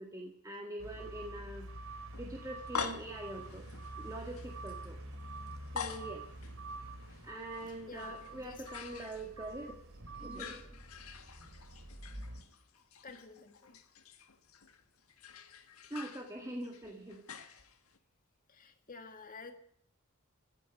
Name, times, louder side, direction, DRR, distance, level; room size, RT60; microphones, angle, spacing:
voice 1, 0.0-1.7 2.2-3.6 4.0-5.0 5.7-6.2 7.2-9.7 10.2-10.7 15.9-17.5, right 1 dB, 15° right, 1 dB, 1.8 m, -44 dB
sound 1, 0.8-12.4, right 2 dB, 65° right, 3.1 m, -47 dB
sound 2, 2.1-9.7 10.0-18.0, left 6 dB, 85° left, 1.6 m, -47 dB
voice 2, 7.9-8.7 13.0-13.8 18.5-19.5, left 4 dB, 40° left, 6 dB, 2.0 m, -50 dB
15.5 x 8.8 x 10.0 m, 0.65 s
head